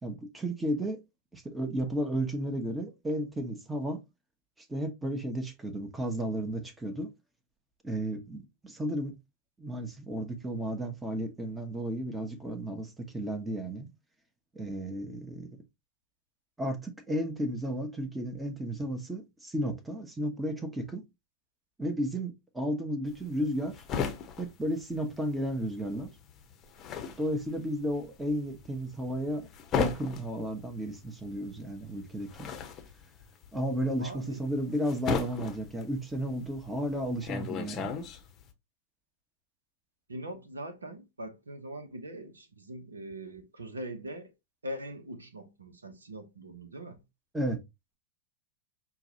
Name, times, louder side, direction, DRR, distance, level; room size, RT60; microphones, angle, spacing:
voice 1, 0.0-1.0 1.3-4.0 4.7-7.1 7.8-9.1 9.6-13.9 14.5-15.5 16.6-21.0 21.8-23.8 24.4-26.1 27.2-29.5 29.7-32.5 33.5-37.9 47.3-47.6, equal, 10° right, 0.8 m, -33 dB
sound 1, 23.1-25.6 25.9-38.5, left 6 dB, 30° left, 0.8 m, -36 dB
voice 2, 34.0-34.4 40.1-44.3 44.6-47.0, right 1 dB, 75° right, 0.8 m, -42 dB
5.7 x 2.3 x 2.8 m
figure-of-eight pair, 90°, 0 cm